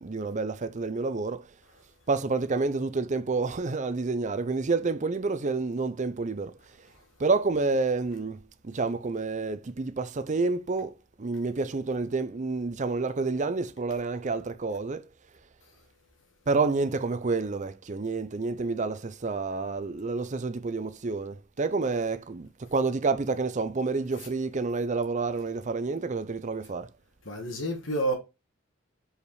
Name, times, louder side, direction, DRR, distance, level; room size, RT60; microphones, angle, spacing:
voice 1, 0.0-1.5 2.1-6.5 7.2-15.0 16.5-26.9, right 3 dB, 40° right, 0.6 m, -29 dB
voice 2, 27.3-28.2, right 1 dB, 75° left, 1.9 m, -29 dB
5.1 x 5.0 x 4.8 m
head